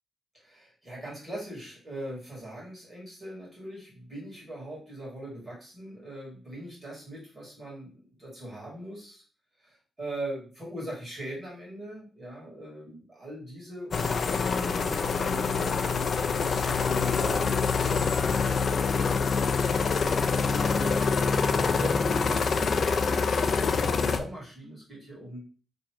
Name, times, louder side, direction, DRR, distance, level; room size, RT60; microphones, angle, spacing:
voice 1, 0.4-9.2 9.6-21.2 21.6-25.5, right 1 dB, 15° right, -5 dB, 1.9 m, -41 dB
sound 1, 13.9-24.2, left 5 dB, 45° left, 0.4 m, -26 dB
3.1 x 2.6 x 4.4 m, 0.39 s
wide cardioid pair, 170°, 0 cm